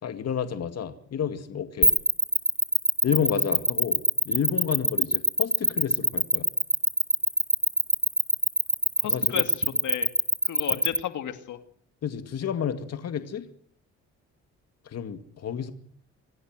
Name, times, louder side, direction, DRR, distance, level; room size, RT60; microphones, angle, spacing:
voice 1, 0.0-1.9 3.0-6.5 9.0-9.4 10.7-10.8 12.0-13.5 14.8-15.7, left 8 dB, 55° left, 9 dB, 2.2 m, -30 dB
sound 1, 1.8-11.0, right 1 dB, 10° right, 1.3 m, -22 dB
voice 2, 9.0-10.1 10.4-11.6, left 10 dB, 75° left, 9 dB, 2.4 m, -33 dB
26.5 x 16.0 x 7.8 m, 0.63 s
cardioid pair, 90°, 30 cm